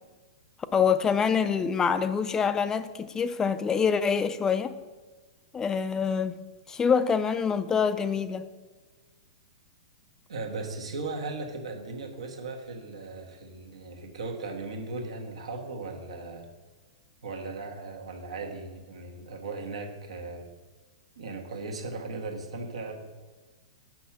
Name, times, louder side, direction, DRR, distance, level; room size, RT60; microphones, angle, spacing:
voice 1, 0.7-4.8 5.5-6.4 6.7-8.5, left 6 dB, 20° left, 12 dB, 0.4 m, -25 dB
voice 2, 10.3-16.5 17.2-20.5 21.2-23.0, right 3 dB, 75° right, 2 dB, 1.3 m, -37 dB
6.1 x 6.0 x 5.9 m, 1.3 s
hypercardioid pair, 110°, 3 cm